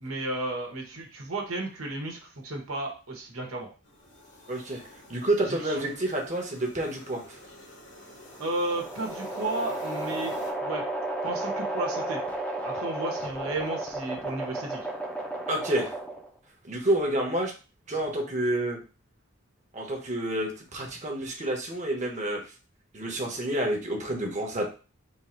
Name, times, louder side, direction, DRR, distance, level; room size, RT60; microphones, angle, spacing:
voice 1, 0.0-3.7 5.4-5.8 8.4-10.8 11.2-12.2 12.6-14.8, right 2 dB, 85° right, 1 dB, 1.2 m, -33 dB
sound 1, 3.8-10.5, left 1 dB, 55° left, 1.1 m, -47 dB
voice 2, 4.5-4.8 5.1-7.2 15.5-15.9 16.6-17.5 17.9-18.8 19.7-22.4 22.9-24.7, right 1 dB, 35° right, 1 dB, 1.0 m, -29 dB
sound 2, 8.1-16.4, right 2 dB, 5° left, 0.6 m, -33 dB
3.7 x 2.6 x 4.4 m, 0.34 s
head